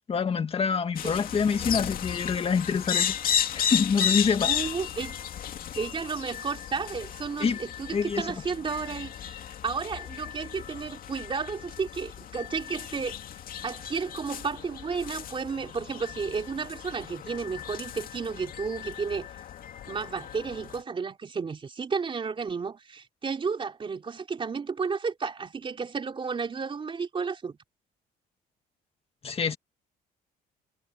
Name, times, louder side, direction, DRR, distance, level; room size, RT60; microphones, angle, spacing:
voice 1, 0.1-3.1 3.5-4.6 7.4-7.6 7.9-8.3 29.2-29.6, left 6 dB, 35° left, 2.1 m, -26 dB
sound 1, 1.0-20.8, left 9 dB, 55° left, 2.4 m, -34 dB
voice 2, 4.4-5.2 5.7-9.4 9.6-13.2 13.6-19.3 19.9-27.6, right 5 dB, 30° right, 3.1 m, -32 dB
cardioid pair, 110°, 17 cm